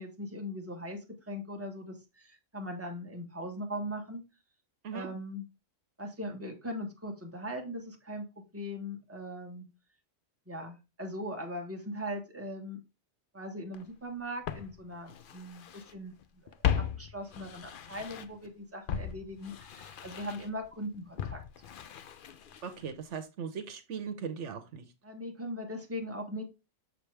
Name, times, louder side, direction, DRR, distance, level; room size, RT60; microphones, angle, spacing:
voice 1, 0.0-4.2 4.9-5.5 6.0-9.7 10.5-12.8 13.3-16.1 16.4-16.5 17.0-21.4 25.0-26.4, equal, 10° right, 1 dB, 1.4 m, -40 dB
Walk footsteps, 13.7-13.8 14.5-15.9 16.2-18.5 18.9-22.9 23.2-23.3, left 9 dB, 55° left, 0.7 m, -37 dB
voice 2, 22.6-24.8, right 6 dB, 75° right, 7 dB, 1.2 m, -39 dB
6.5 x 5.0 x 3.3 m, 0.26 s
omnidirectional pair, 1.2 m